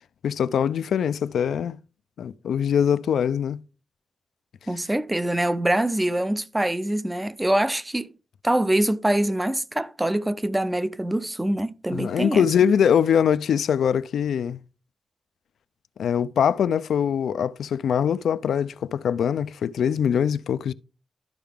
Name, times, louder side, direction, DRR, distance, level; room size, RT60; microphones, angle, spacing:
voice 1, 0.2-1.8 2.2-3.6 11.9-14.6 16.0-20.7, left 8 dB, 90° left, 0.3 m, -23 dB
voice 2, 4.7-8.1 8.4-12.5, right 1 dB, 10° right, 0.4 m, -24 dB
12.0 x 4.7 x 3.4 m
wide cardioid pair, 145°, 0 cm